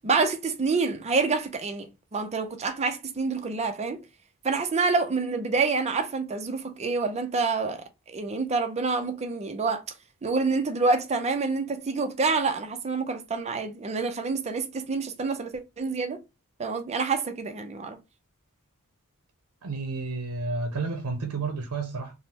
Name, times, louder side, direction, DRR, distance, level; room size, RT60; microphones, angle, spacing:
voice 1, 0.0-1.9 2.1-4.0 4.4-9.8 10.2-16.2 16.6-18.0, right 4 dB, 30° right, 0.4 m, -27 dB
voice 2, 19.6-22.1, right 3 dB, 80° right, 0.6 m, -31 dB
3.4 x 2.0 x 2.8 m
head